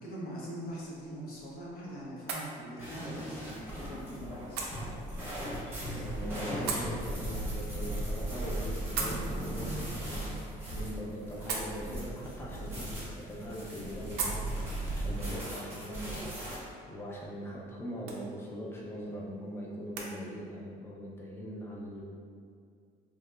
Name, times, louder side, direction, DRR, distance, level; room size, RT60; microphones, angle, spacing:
voice 1, 0.0-4.7, right 1 dB, 65° left, -5 dB, 0.7 m, -42 dB
sound 1, 0.6-20.1, right 4 dB, 75° right, 0.4 m, -44 dB
sound 2, 2.8-16.6, right 1 dB, 15° right, 0.8 m, -37 dB
voice 2, 5.9-10.4 10.7-14.5 14.9-16.2 16.9-22.0, equal, 15° left, -4 dB, 0.5 m, -41 dB
2.8 x 2.0 x 2.2 m, 2.3 s
cardioid pair, 110°, 17 cm